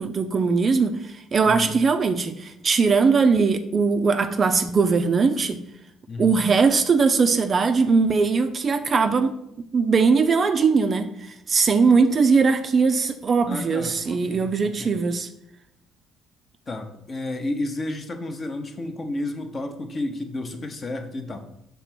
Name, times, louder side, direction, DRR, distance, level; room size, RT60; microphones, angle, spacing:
voice 1, 0.0-5.6 6.2-9.3 9.7-15.3, right 4 dB, 30° right, 8 dB, 0.4 m, -20 dB
voice 2, 6.1-6.4 13.5-15.0 16.7-21.4, left 2 dB, 30° left, 6 dB, 0.7 m, -32 dB
5.9 x 3.4 x 5.9 m, 0.80 s
cardioid pair, 140°, 0 cm